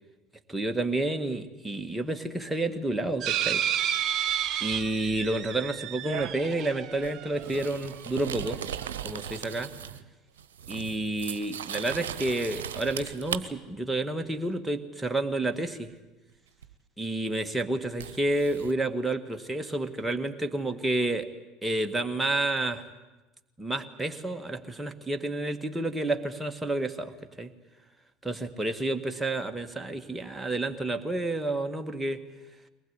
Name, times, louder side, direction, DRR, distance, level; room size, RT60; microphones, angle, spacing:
voice 1, 0.5-3.7 4.6-8.6 9.0-9.7 10.7-15.9 17.0-21.3 21.6-22.8 23.6-27.1 27.4-27.5 28.2-32.2, right 2 dB, 10° right, 5 dB, 1.8 m, -30 dB
sound 1, 3.2-7.8 8.5-8.6 8.8-8.9, right 10 dB, 50° right, 1.0 m, -31 dB
sound 2, 7.0-10.1 10.4-13.4 16.6-16.7 18.0-18.7, right 9 dB, 75° right, 0.9 m, -38 dB
22.5 x 20.0 x 9.7 m, 1.1 s
hypercardioid pair, 70°, 0 cm